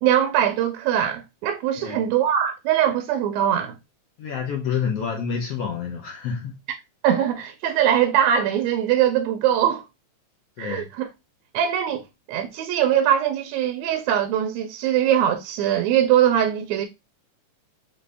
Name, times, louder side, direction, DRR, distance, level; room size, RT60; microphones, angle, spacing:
voice 1, 0.0-3.7 7.0-9.8 10.6-11.0 11.5-16.9, right 10 dB, 80° right, 1.7 m, -21 dB
voice 2, 4.2-6.5 10.6-10.9, left 7 dB, 80° left, 1.4 m, -28 dB
5.1 x 2.6 x 3.3 m
omnidirectional pair, 3.5 m